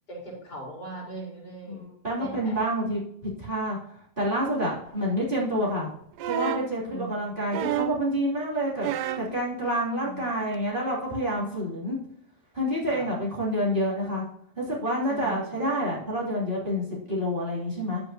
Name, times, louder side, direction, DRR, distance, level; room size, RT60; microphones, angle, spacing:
voice 1, 0.1-1.8 2.2-2.6 4.8-4.9 6.9-7.3 10.0-10.3 12.9-13.1 15.1-15.6, right 2 dB, 75° left, -5 dB, 4.6 m, -40 dB
voice 2, 1.7-3.8 4.2-5.9 6.2-12.0 12.5-14.3 14.6-18.0, equal, 30° right, -7 dB, 3.3 m, -28 dB
sound 1, 6.2-6.7 7.5-8.1 8.8-9.3 10.5-10.6, right 11 dB, 80° right, 1.2 m, -29 dB
10.0 x 8.1 x 2.9 m, 0.71 s
omnidirectional pair, 1.8 m